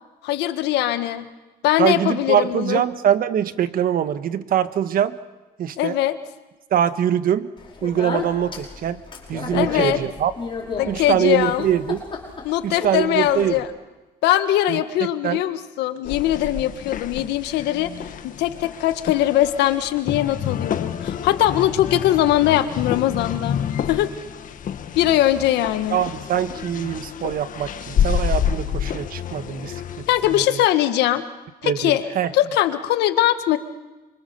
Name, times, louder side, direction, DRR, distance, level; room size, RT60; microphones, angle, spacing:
voice 1, 0.2-1.3 1.6-2.8 5.8-6.2 9.5-10.0 10.8-11.7 12.4-13.7 14.2-17.9 18.2-24.1 24.9-26.1 30.1-31.2 31.6-33.6, left 13 dB, 85° left, 10 dB, 1.6 m, -21 dB
voice 2, 1.8-5.2 5.6-5.9 6.7-7.5 7.8-9.0 9.3-10.3 10.9-12.0 12.6-13.5 14.7-14.8 15.2-15.4 25.9-30.1 30.3-30.6 31.6-32.3, right 10 dB, 60° right, 12 dB, 1.5 m, -23 dB
Speech, 7.6-13.6, left 4 dB, 30° left, 6.1 m, -33 dB
sound 1, 16.0-30.5, left 8 dB, 50° left, 1.6 m, -28 dB
29.0 x 26.0 x 7.0 m, 1.2 s
cardioid pair, 110°, 17 cm